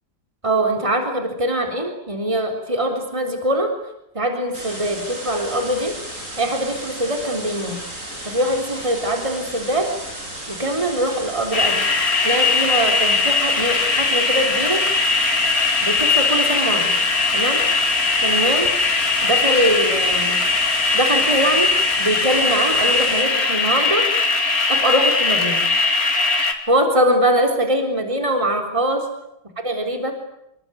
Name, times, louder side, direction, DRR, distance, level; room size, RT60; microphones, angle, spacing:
voice 1, 0.4-3.7 4.1-5.9 6.4-7.8 8.2-9.9 10.5-11.8 12.2-14.8 15.8-16.9 17.3-17.6 18.2-18.7 19.2-20.4 20.9-21.7 22.0-24.1 24.7-25.6 26.7-29.1 29.6-30.1, right 1 dB, 15° right, 4 dB, 3.9 m, -22 dB
sound 1, 4.5-23.2, right 1 dB, 45° right, 8.0 m, -34 dB
sound 2, 11.5-26.5, left 3 dB, 55° left, 3.4 m, -19 dB
27.5 x 22.5 x 9.3 m, 0.83 s
omnidirectional pair, 1.9 m